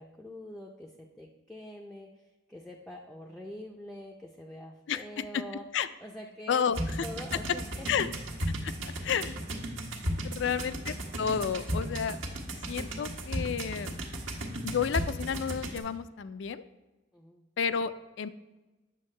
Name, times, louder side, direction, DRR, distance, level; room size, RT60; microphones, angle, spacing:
voice 1, 0.0-2.1 2.5-5.6 6.0-6.7 7.0-7.9 17.1-17.5, equal, ahead, 0 dB, 0.5 m, -45 dB
voice 2, 4.9-5.4 5.7-5.9 6.5-7.1 7.9-8.1 8.6-9.4 10.2-12.2 12.7-14.0 14.6-16.6 17.6-18.3, left 7 dB, 65° left, 14 dB, 0.4 m, -31 dB
sound 1, 6.7-15.8, right 1 dB, 85° right, 1.4 m, -35 dB
9.1 x 7.0 x 3.2 m, 1.1 s
head